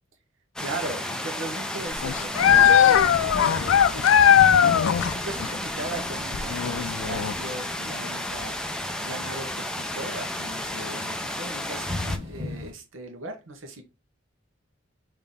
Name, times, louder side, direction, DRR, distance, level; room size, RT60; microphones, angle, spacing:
sound 1, 0.6-12.2, left 1 dB, 5° left, 0.4 m, -32 dB
voice 1, 0.6-4.5 4.9-8.6 9.0-12.0 12.3-13.8, right 2 dB, 85° right, 1.0 m, -38 dB
sound 2, 1.8-5.1 5.4-5.5 6.3-7.3, left 9 dB, 90° left, 0.3 m, -19 dB
Thunder / Rain, 2.3-12.7, left 1 dB, 30° right, 1.6 m, -38 dB
3.8 x 2.8 x 3.6 m
head